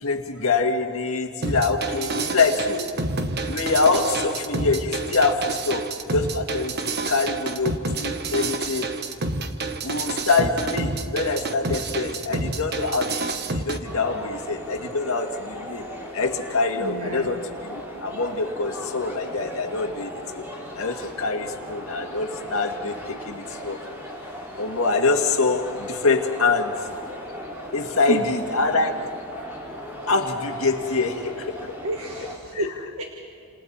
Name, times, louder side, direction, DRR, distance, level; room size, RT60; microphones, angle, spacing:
voice 1, 0.0-3.2 3.5-8.9 9.8-15.8 16.1-20.4 20.8-23.8 24.6-26.9 27.7-29.2 30.1-31.7 32.5-32.9, left 3 dB, 70° left, 3 dB, 1.9 m, -25 dB
sound 1, 1.4-13.8, right 3 dB, 45° right, 1.2 m, -28 dB
sound 2, 13.8-32.4, equal, 10° right, 3.5 m, -37 dB
voice 2, 16.8-17.3 28.1-28.2 31.8-33.0, right 1 dB, 75° right, 3 dB, 1.6 m, -30 dB
29.5 x 27.5 x 4.3 m, 2.6 s
head